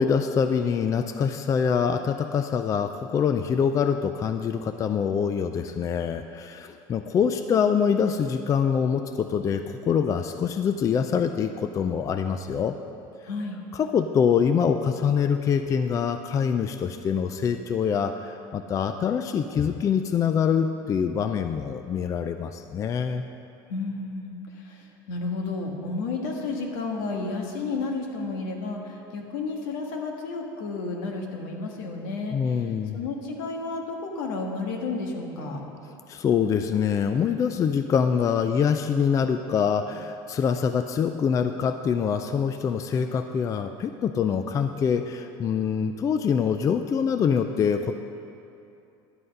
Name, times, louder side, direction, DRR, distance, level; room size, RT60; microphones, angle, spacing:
voice 1, 0.0-12.8 13.7-23.3 32.3-33.0 36.1-47.9, left 7 dB, 30° left, 8 dB, 0.4 m, -25 dB
voice 2, 13.2-13.6 23.7-35.6, left 3 dB, 80° left, 1 dB, 1.6 m, -32 dB
11.5 x 7.8 x 5.3 m, 2.7 s
supercardioid pair, 120°, 11 cm